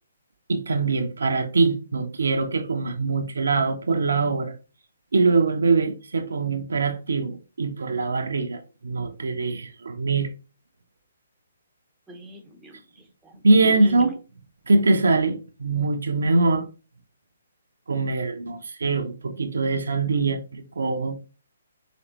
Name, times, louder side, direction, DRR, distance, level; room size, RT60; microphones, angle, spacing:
voice 1, 0.5-4.5 5.1-10.3 13.4-14.1 14.7-16.6 17.9-21.2, right 3 dB, 70° right, 0.7 m, -23 dB
voice 2, 12.1-14.1, right 2 dB, 10° right, 0.8 m, -44 dB
5.2 x 3.2 x 2.9 m
figure-of-eight pair, 135°, 0 cm